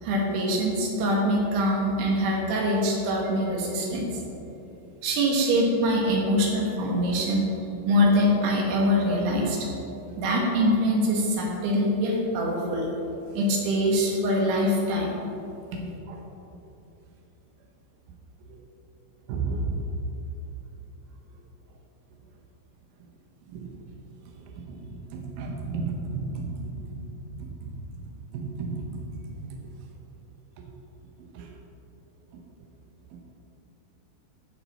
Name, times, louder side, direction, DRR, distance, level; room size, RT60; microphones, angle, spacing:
voice 1, 0.0-4.2 5.0-7.5 7.9-9.7 10.2-12.9 13.3-15.3, equal, 65° right, -1 dB, 3.1 m, -24 dB
voice 2, 19.3-19.8 23.5-23.7 24.5-26.5 26.9-27.1 27.4-27.8 28.3-29.1 29.4-29.6 31.3-31.5 33.1-33.2, right 4 dB, 85° right, 1 dB, 2.0 m, -33 dB
16.0 x 6.0 x 4.3 m, 2.9 s
omnidirectional pair, 5.8 m